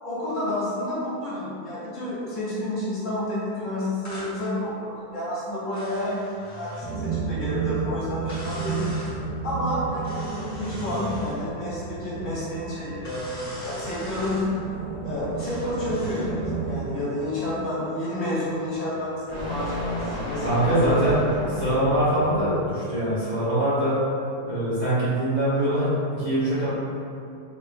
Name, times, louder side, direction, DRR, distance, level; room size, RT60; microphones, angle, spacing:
voice 1, 0.0-8.9 9.4-14.7 15.0-21.1 21.4-21.5, left 1 dB, 55° left, -9 dB, 1.2 m, -30 dB
sound 1, 4.0-4.3 5.7-6.9 8.3-9.2 10.0-11.4 13.0-14.5 15.4-16.3, equal, 15° left, 0.7 m, -40 dB
sound 2, 6.8-16.9, right 5 dB, 85° right, 1.1 m, -32 dB
sound 3, 9.4-22.9, equal, 65° right, 1.9 m, -36 dB
voice 2, 20.4-21.2 21.6-24.0 24.4-26.7, right 1 dB, 35° right, -13 dB, 0.8 m, -23 dB
3.5 x 2.4 x 3.4 m, 2.5 s
omnidirectional pair, 1.7 m